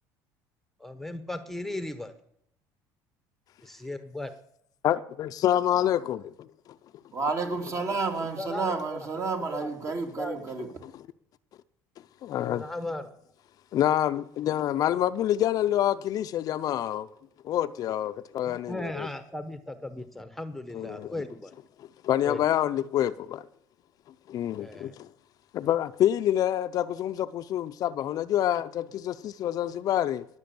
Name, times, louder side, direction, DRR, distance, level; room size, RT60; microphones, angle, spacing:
voice 1, 0.8-2.1 3.6-4.3 8.4-9.7 10.2-10.5 12.5-13.1 18.4-21.5 22.2-22.4 24.6-25.0, left 1 dB, 5° left, 1.0 m, -37 dB
voice 2, 4.8-6.5 10.8-11.0 12.2-12.6 13.7-17.1 17.4-19.1 20.7-21.2 22.0-23.5 24.3-25.1 25.5-30.3, left 11 dB, 50° left, 0.6 m, -27 dB
voice 3, 7.1-10.7, right 4 dB, 40° right, 2.3 m, -30 dB
20.5 x 6.9 x 7.0 m
cardioid pair, 110°, 8 cm